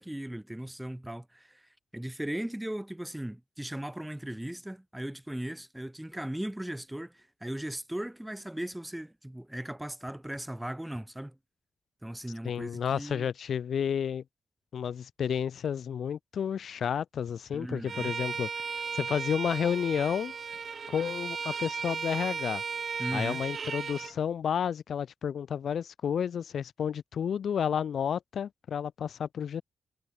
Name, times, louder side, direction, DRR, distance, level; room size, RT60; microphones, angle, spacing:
voice 1, 0.0-11.4 12.0-13.3 17.5-18.1 23.0-23.4, right 1 dB, 5° right, 1.4 m, -38 dB
voice 2, 12.4-14.2 14.7-18.5 18.9-20.3 20.9-22.6 23.1-29.6, left 8 dB, 80° left, 0.7 m, -31 dB
Bowed string instrument, 17.9-24.1, right 5 dB, 55° right, 0.5 m, -35 dB
sound 1, 18.7-23.7, right 8 dB, 80° right, 2.9 m, -61 dB
wide cardioid pair, 110°, 0 cm